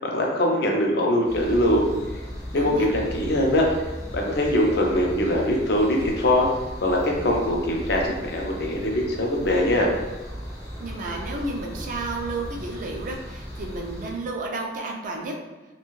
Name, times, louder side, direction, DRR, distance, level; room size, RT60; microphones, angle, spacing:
voice 1, 0.0-1.9 2.5-3.7 4.1-6.5 6.8-9.9, left 1 dB, 65° left, 0 dB, 0.5 m, -22 dB
sound 1, 1.3-14.1, equal, 15° left, 0.5 m, -36 dB
voice 2, 2.5-2.9 10.8-15.3, right 2 dB, 50° right, 0 dB, 0.4 m, -32 dB
2.5 x 2.2 x 3.0 m, 1.1 s
head